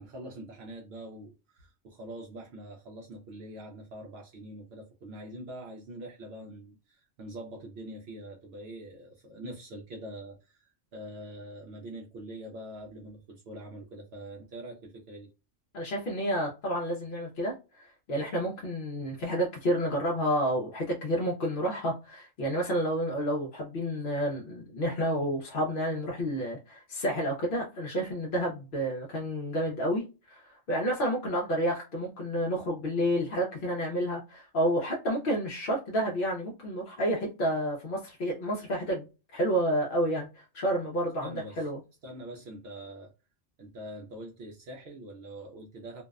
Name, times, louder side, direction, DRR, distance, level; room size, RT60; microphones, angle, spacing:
voice 1, 0.0-15.3 41.2-41.7 42.0-43.1 43.6-46.0, right 1 dB, 65° right, 0.8 m, -44 dB
voice 2, 15.7-41.8, equal, 60° left, 0.7 m, -30 dB
2.6 x 2.1 x 2.3 m
omnidirectional pair, 1.2 m